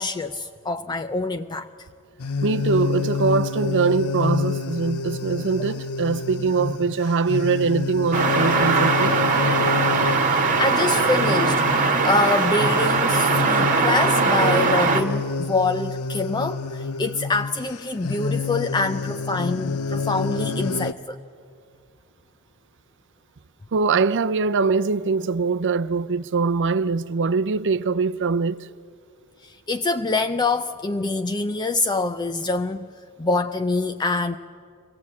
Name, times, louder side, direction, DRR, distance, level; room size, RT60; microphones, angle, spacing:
voice 1, 0.0-1.7 10.6-21.2 29.4-32.9 33.2-34.4, left 3 dB, 20° left, 0.4 m, -25 dB
sound 1, 2.2-20.9, left 4 dB, 70° left, 0.7 m, -28 dB
voice 2, 2.4-9.2 23.7-28.6, right 4 dB, 55° right, 0.6 m, -22 dB
sound 2, 8.1-15.0, right 4 dB, 35° right, 1.5 m, -20 dB
23.5 x 16.5 x 8.5 m
head